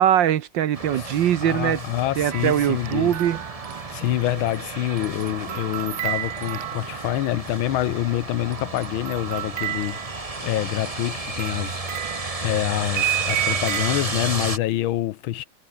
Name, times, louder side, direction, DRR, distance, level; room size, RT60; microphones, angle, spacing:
voice 1, 0.0-1.8 2.2-3.4, right 10 dB, 65° right, 1.5 m, -21 dB
sound 1, 0.7-14.6, right 2 dB, 15° right, 2.1 m, -33 dB
voice 2, 1.4-3.2 3.9-10.0 10.4-15.4, left 14 dB, 75° left, 1.6 m, -26 dB
sound 2, 2.3-7.3 8.5-14.0, right 16 dB, 85° right, 0.9 m, -32 dB
omnidirectional pair, 2.3 m